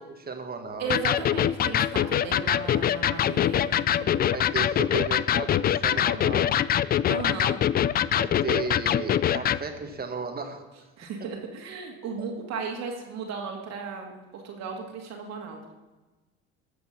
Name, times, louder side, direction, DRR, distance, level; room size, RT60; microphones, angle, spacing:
voice 1, 0.0-0.9 4.3-6.6 8.1-10.9, right 5 dB, 30° right, 5 dB, 1.7 m, -34 dB
voice 2, 0.8-4.3 7.1-7.6 11.0-15.6, right 5 dB, 60° right, 1 dB, 2.3 m, -35 dB
Electric guitar, 0.9-9.6, left 10 dB, 30° left, 0.4 m, -24 dB
13.0 x 6.9 x 5.7 m, 1.2 s
supercardioid pair, 75°, 30 cm